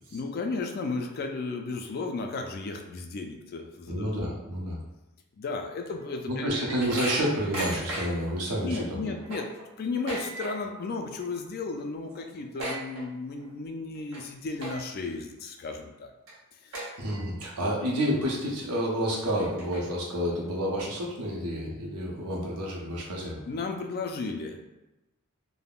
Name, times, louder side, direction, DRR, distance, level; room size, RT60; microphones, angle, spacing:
voice 1, 0.1-4.1 5.4-6.5 8.6-9.5 9.8-16.1 16.5-16.9 23.5-24.6, left 3 dB, 45° left, 4 dB, 0.3 m, -34 dB
voice 2, 3.9-4.8 6.3-9.1 17.0-23.4, equal, 90° right, -3 dB, 0.8 m, -29 dB
sound 1, 5.9-8.3 8.7-8.8 9.1-10.8 11.1-11.5 11.8-11.9 12.1-13.5 13.9-14.2 14.6-15.1 15.6-15.7 16.3-16.4 16.7-17.5 17.9-18.0 18.7-18.8 19.2-20.1, right 1 dB, 60° right, 1.0 m, -36 dB
3.4 x 2.1 x 2.3 m, 1.0 s
head